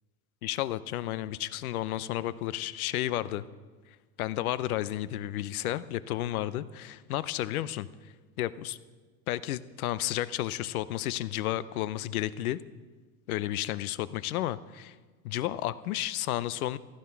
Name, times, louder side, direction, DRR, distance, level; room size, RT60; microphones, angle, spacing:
voice 1, 0.4-3.5 4.2-7.9 8.4-8.8 9.3-12.6 13.3-14.9 15.2-16.8, left 14 dB, 85° left, 16 dB, 0.8 m, -32 dB
14.5 x 11.5 x 5.9 m, 1.4 s
supercardioid pair, 155°, 42 cm